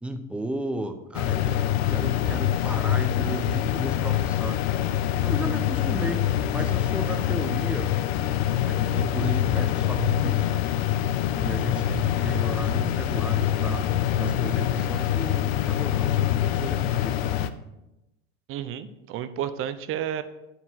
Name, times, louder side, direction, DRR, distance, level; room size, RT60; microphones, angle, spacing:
voice 1, 0.0-4.6 5.2-6.2 6.5-7.9 8.6-10.6 11.3-13.9 14.2-17.2, right 1 dB, 5° right, 7 dB, 0.9 m, -34 dB
sound 1, 1.1-17.5, left 11 dB, 80° left, 0.8 m, -25 dB
voice 2, 18.5-20.2, right 10 dB, 45° right, 12 dB, 0.9 m, -31 dB
9.9 x 8.1 x 4.6 m, 0.93 s
supercardioid pair, 120°, 30 cm